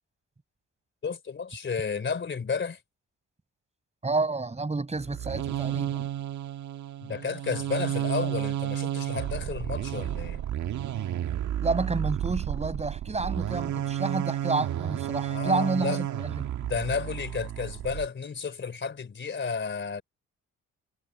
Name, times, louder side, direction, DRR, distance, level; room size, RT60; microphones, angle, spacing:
voice 1, 1.0-2.8 7.0-10.4 15.3-16.0 16.6-20.0, left 5 dB, 40° left, 3.3 m, -32 dB
voice 2, 4.0-6.1 11.6-16.4, right 3 dB, 20° right, 5.7 m, -30 dB
sound 1, 5.0-18.1, right 11 dB, 70° right, 1.7 m, -32 dB
cardioid pair, 90°, 30 cm